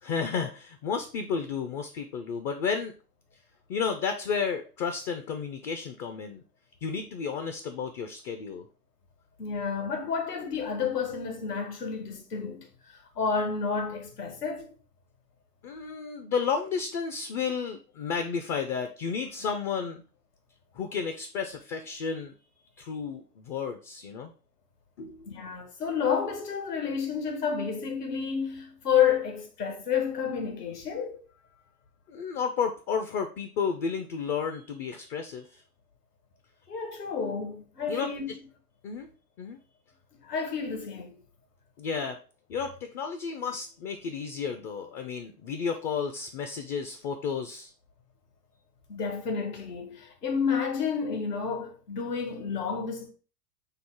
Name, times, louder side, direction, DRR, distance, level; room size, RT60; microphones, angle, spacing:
voice 1, 0.0-2.9 3.7-6.4 6.8-8.7 15.6-20.0 20.7-22.3 22.8-24.3 25.0-25.3 32.1-35.6 37.9-38.1 38.8-39.1 39.4-39.6 41.8-42.2 42.5-47.7, left 6 dB, 30° left, 0.4 m, -32 dB
voice 2, 9.4-12.7 13.1-14.7 25.3-31.2 36.7-38.3 40.2-41.2 48.9-53.1, left 6 dB, 80° left, 1.3 m, -30 dB
5.5 x 2.0 x 4.4 m
hypercardioid pair, 100°, 47 cm